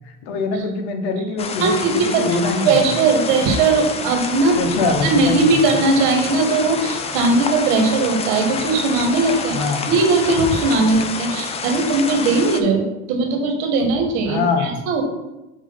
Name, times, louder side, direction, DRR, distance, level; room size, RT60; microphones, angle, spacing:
voice 1, 0.2-2.8 4.5-5.4 9.5-9.9 14.3-14.7, left 4 dB, 75° left, 5 dB, 1.2 m, -23 dB
sound 1, 1.4-12.6, left 5 dB, 20° left, 0.4 m, -28 dB
voice 2, 1.6-9.6 9.9-15.0, right 3 dB, 70° right, 3 dB, 1.6 m, -19 dB
sound 2, 2.9-10.9, equal, 10° right, 1.9 m, -36 dB
6.3 x 3.7 x 5.2 m, 1.0 s
supercardioid pair, 135°, 35 cm